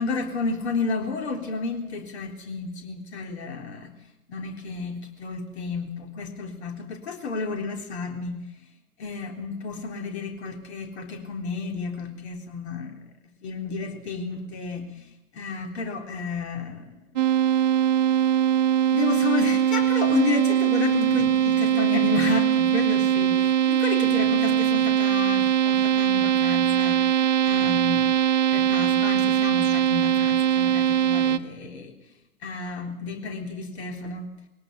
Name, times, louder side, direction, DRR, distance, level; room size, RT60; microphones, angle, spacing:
voice 1, 0.0-3.9 4.3-8.4 9.0-13.1 13.4-17.0 18.9-28.2 28.5-31.9 32.4-34.3, left 4 dB, 50° left, 4 dB, 3.8 m, -31 dB
sound 1, 17.2-31.4, right 10 dB, 35° right, 0.8 m, -21 dB
22.0 x 17.5 x 8.3 m, 0.94 s
figure-of-eight pair, 125°, 42 cm